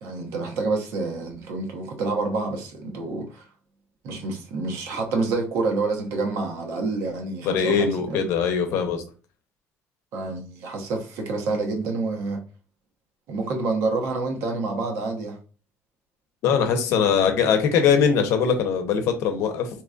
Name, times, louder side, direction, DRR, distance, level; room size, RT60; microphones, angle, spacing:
voice 1, 0.0-3.5 4.0-8.2 10.1-12.4 13.3-15.4, right 3 dB, 70° right, 1.0 m, -28 dB
voice 2, 7.5-9.0 16.4-19.7, left 6 dB, 75° left, 0.7 m, -21 dB
3.8 x 2.9 x 2.4 m
cardioid pair, 155°, 5 cm